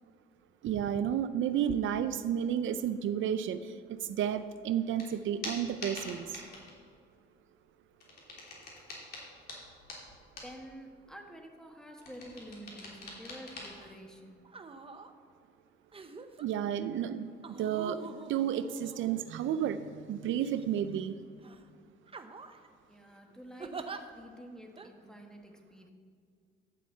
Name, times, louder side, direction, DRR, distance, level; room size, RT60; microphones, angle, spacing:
voice 1, 0.6-6.4 16.4-18.0 18.3-21.2, right 9 dB, 75° right, 12 dB, 0.5 m, -32 dB
sound 1, 5.0-5.1 5.4-6.7 7.9-10.6 12.0-13.7, left 2 dB, 55° left, 3.3 m, -44 dB
voice 2, 10.4-14.5 22.9-23.9 24.1-25.9, equal, 5° left, 2 dB, 1.6 m, -49 dB
sound 2, 13.8-14.0 14.4-15.1 15.9-16.5 17.4-19.5 20.3-21.0 21.4-21.6 22.1-22.7 23.6-24.0 24.8-24.9, right 4 dB, 30° right, 0.8 m, -45 dB
11.5 x 5.5 x 7.8 m, 2.2 s
cardioid pair, 90°, 20 cm